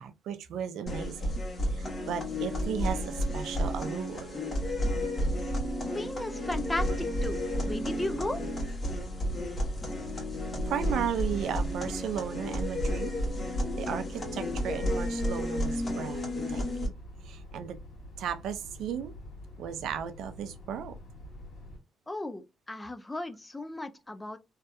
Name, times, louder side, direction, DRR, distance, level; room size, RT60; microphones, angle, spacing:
voice 1, 0.0-1.3 1.7-4.3 10.7-13.1 13.8-16.2 16.5-16.9 17.2-17.8 18.2-19.1 19.6-20.9, right 8 dB, 80° right, 0.4 m, -35 dB
sound 1, 0.9-16.9, equal, 35° left, 1.0 m, -32 dB
voice 2, 5.9-8.4 22.1-24.4, left 2 dB, 15° left, 0.4 m, -35 dB
sound 2, 6.6-21.8, left 1 dB, 65° left, 1.3 m, -47 dB
2.6 x 2.2 x 2.3 m
cardioid pair, 90°, 0 cm